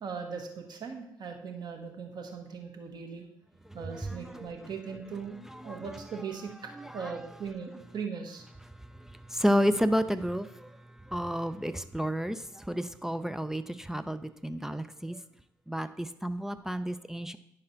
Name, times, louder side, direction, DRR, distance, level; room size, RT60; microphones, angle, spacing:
voice 1, 0.0-3.2 3.7-5.4 5.6-6.5 6.8-8.4, right 6 dB, 45° right, 3 dB, 1.3 m, -39 dB
voice 2, 3.7-4.5 5.4-6.2 6.7-7.3 8.7-15.2 15.7-17.4, equal, 5° right, 10 dB, 0.4 m, -32 dB
10.0 x 6.6 x 2.8 m, 0.75 s
figure-of-eight pair, 40°, 10 cm